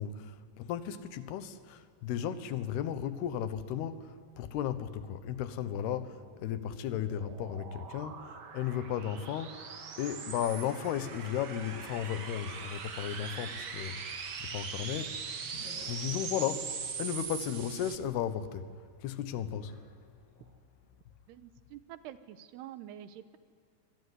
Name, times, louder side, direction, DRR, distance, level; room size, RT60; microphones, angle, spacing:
voice 1, 0.0-9.6 10.0-15.5 15.8-18.7 19.0-19.7, left 9 dB, 80° left, 3.2 m, -35 dB
sound 1, 6.3-18.0, right 6 dB, 65° right, 1.0 m, -41 dB
sound 2, 15.5-16.4 19.3-20.5 21.0-21.3, left 1 dB, 60° left, 8.1 m, -53 dB
voice 2, 21.3-23.4, right 11 dB, 85° right, 3.2 m, -47 dB
25.5 x 21.5 x 9.8 m
omnidirectional pair, 4.6 m